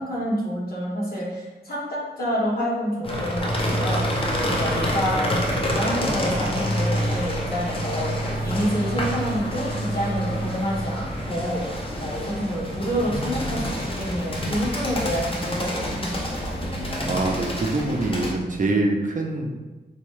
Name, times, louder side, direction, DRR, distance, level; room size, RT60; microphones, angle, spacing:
voice 1, 0.0-8.1 8.4-11.6 12.0-17.1, equal, 60° left, -5 dB, 1.1 m, -28 dB
sound 1, 3.0-18.3, left 1 dB, 30° left, 0.6 m, -28 dB
sound 2, 3.2-12.7, right 1 dB, 85° left, 1.2 m, -31 dB
voice 2, 17.1-19.5, right 2 dB, 45° right, 0 dB, 0.5 m, -24 dB
4.0 x 2.2 x 3.1 m, 1.1 s
wide cardioid pair, 110°, 18 cm